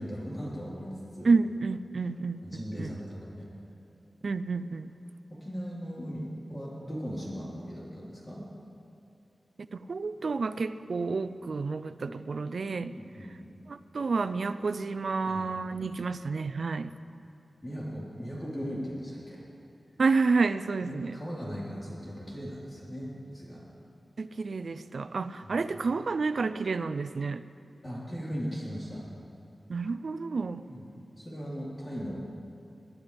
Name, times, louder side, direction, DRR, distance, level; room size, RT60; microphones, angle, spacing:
voice 1, 0.0-1.3 2.4-3.5 5.3-8.4 12.0-12.2 12.9-13.5 15.2-15.8 16.3-16.4 17.6-19.4 20.8-23.6 25.4-25.7 27.8-29.0 30.7-30.9 31.1-32.2, equal, 25° left, -7 dB, 4.2 m, -38 dB
voice 2, 1.2-2.9 4.2-4.9 9.7-12.9 13.7-16.9 20.0-21.2 24.2-27.4 29.7-30.6, right 4 dB, 70° right, 13 dB, 0.4 m, -29 dB
22.5 x 11.5 x 3.5 m, 2.6 s
wide cardioid pair, 85°, 0 cm